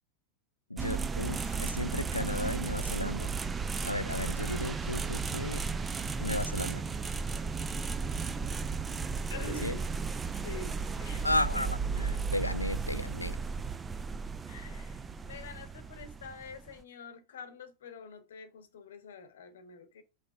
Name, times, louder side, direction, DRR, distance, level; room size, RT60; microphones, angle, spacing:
voice 1, 0.7-3.3 3.8-5.7 6.2-6.8 9.6-9.8 11.2-13.4, left 1 dB, 85° left, 0.3 m, -34 dB
sound 1, 0.8-16.8, right 5 dB, 15° right, 0.4 m, -34 dB
voice 2, 9.3-9.9 10.4-11.3 14.5-20.0, left 4 dB, 60° left, 0.9 m, -46 dB
5.2 x 3.9 x 4.9 m
figure-of-eight pair, 90°, 0 cm